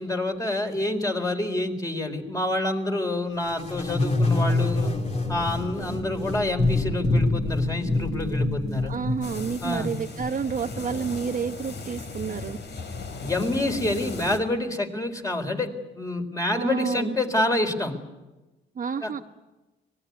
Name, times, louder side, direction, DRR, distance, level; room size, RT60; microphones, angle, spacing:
voice 1, 0.0-4.9 5.3-8.9 9.6-9.9 13.2-15.7 16.0-17.9 19.0-19.1, left 2 dB, 15° left, 4 dB, 4.2 m, -27 dB
sound 1, 3.5-10.3, left 2 dB, 35° left, 3.6 m, -26 dB
voice 2, 8.8-12.6 16.5-17.2 18.8-19.2, right 6 dB, 45° right, 7 dB, 1.0 m, -30 dB
sound 2, 9.2-14.4, left 4 dB, 65° left, 4.0 m, -37 dB
25.5 x 20.0 x 9.6 m, 1.1 s
cardioid pair, 90°, 20 cm